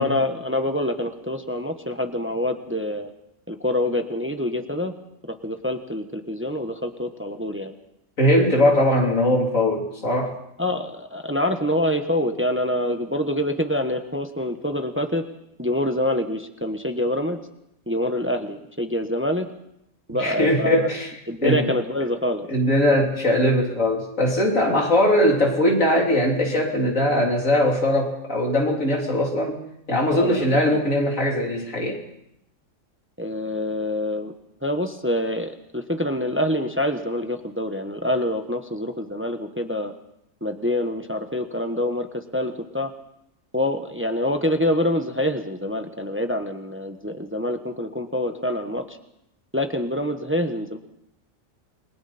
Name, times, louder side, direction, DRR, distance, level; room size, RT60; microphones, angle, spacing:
voice 1, 0.0-3.1 3.5-4.9 5.3-7.7 10.6-15.2 15.6-17.4 17.9-19.5 20.1-20.9 21.3-22.5 30.1-30.9 33.2-34.3 34.6-39.9 40.4-42.9 43.5-49.0 49.5-50.8, left 1 dB, 10° right, 6 dB, 1.2 m, -26 dB
voice 2, 8.2-10.4 20.1-21.1 21.4-21.7 22.5-29.6 29.9-32.0, left 1 dB, 85° left, 0 dB, 3.8 m, -20 dB
28.5 x 21.5 x 4.3 m, 0.79 s
omnidirectional pair, 1.3 m